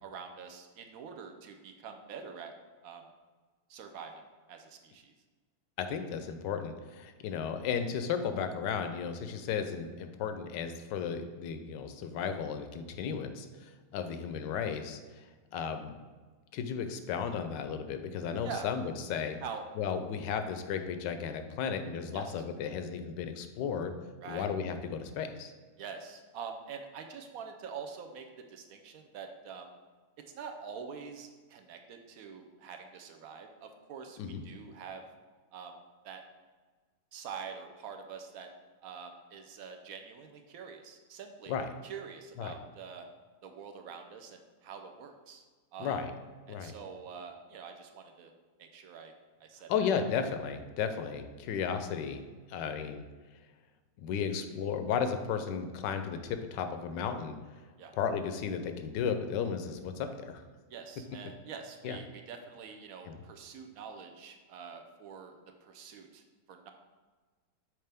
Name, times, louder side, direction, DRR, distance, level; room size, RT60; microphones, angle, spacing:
voice 1, 0.0-2.5 2.8-3.0 3.7-4.1 4.5-5.1 18.4-18.7 19.4-19.6 22.1-22.2 24.2-24.5 25.8-29.7 30.3-35.0 35.5-35.8 36.0-36.2 37.1-38.5 38.8-41.6 41.8-43.1 43.4-45.4 45.7-46.0 46.5-48.3 48.6-49.1 49.4-49.7 57.8-57.9 60.7-66.2 66.5-66.7, right 6 dB, 70° right, 5 dB, 0.9 m, -45 dB
voice 2, 5.8-15.2 15.5-15.9 16.5-19.4 19.8-23.9 24.3-25.5 34.2-34.4 41.5-41.7 42.4-42.5 45.8-46.1 46.5-46.7 49.7-52.2 52.5-53.0 54.0-57.4 58.0-60.4 61.8-62.0 63.0-63.2, left 7 dB, 85° left, 8 dB, 1.2 m, -34 dB
6.5 x 4.3 x 3.4 m, 1.4 s
omnidirectional pair, 1.9 m